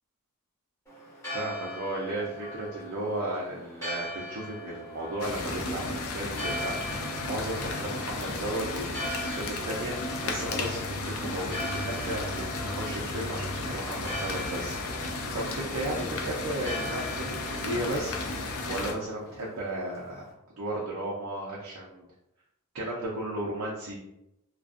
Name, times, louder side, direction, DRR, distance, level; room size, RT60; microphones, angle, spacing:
Church bell, 0.9-20.3, equal, 15° left, 0.9 m, -41 dB
voice 1, 1.3-6.7 7.2-14.8 15.3-18.4 18.7-20.3 20.6-22.0 22.7-24.0, right 1 dB, 80° right, -4 dB, 0.5 m, -34 dB
sound 1, 5.2-18.9, left 2 dB, 65° left, 0.4 m, -34 dB
2.4 x 2.2 x 2.5 m, 0.85 s
head